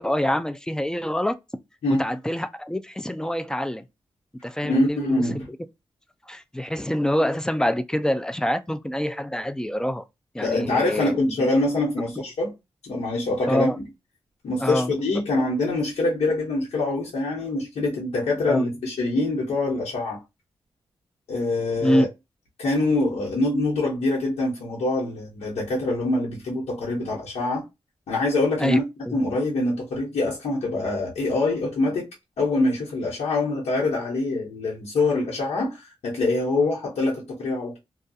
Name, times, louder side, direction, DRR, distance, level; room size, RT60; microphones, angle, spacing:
voice 1, 0.0-1.4 2.0-3.8 4.4-5.4 6.3-10.0 10.3-11.5 13.5-13.8 14.6-14.9 18.5-18.6 21.8-22.1 28.6-28.8 29.1-29.2, equal, 5° left, 0.3 m, -26 dB
voice 2, 4.6-5.5 10.4-12.5 12.8-13.7 14.4-20.2 21.3-22.1 22.6-27.6 28.1-28.8 29.1-32.1 32.4-37.8, left 2 dB, 90° left, 1.0 m, -24 dB
2.3 x 2.3 x 2.6 m
cardioid pair, 65°, 10 cm